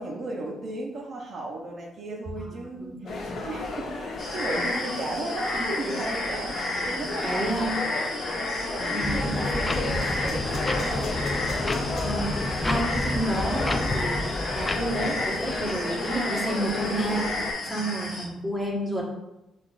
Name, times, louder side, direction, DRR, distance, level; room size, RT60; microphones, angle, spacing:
voice 1, 0.0-6.5 6.8-8.0 8.5-11.1 17.7-17.8, right 2 dB, 50° right, -1 dB, 0.6 m, -35 dB
voice 2, 2.8-3.3 5.5-5.6 7.2-7.8 8.9-9.3 12.0-14.2 14.5-19.0, right 1 dB, 5° right, -4 dB, 1.2 m, -30 dB
sound 1, 3.1-17.5, left 3 dB, 65° left, 0.6 m, -33 dB
sound 2, 4.2-18.2, left 2 dB, 45° left, 1.3 m, -32 dB
sound 3, 9.0-15.8, left 2 dB, 25° left, 0.3 m, -30 dB
5.9 x 2.5 x 2.4 m, 0.94 s
cardioid pair, 90°, 0 cm